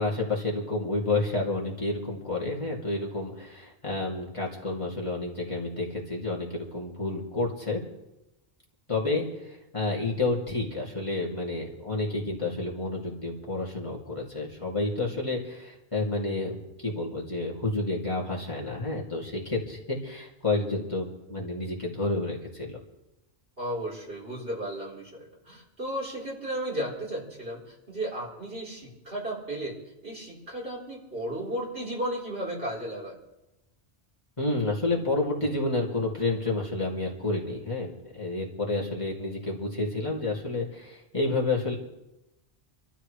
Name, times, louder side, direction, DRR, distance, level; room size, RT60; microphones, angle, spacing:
voice 1, 0.0-7.8 8.9-22.8 34.4-41.8, left 2 dB, 30° left, -4 dB, 2.8 m, -30 dB
voice 2, 23.6-29.8 30.0-33.2, right 1 dB, 65° right, -5 dB, 4.6 m, -34 dB
28.0 x 13.0 x 3.3 m, 0.96 s
omnidirectional pair, 1.1 m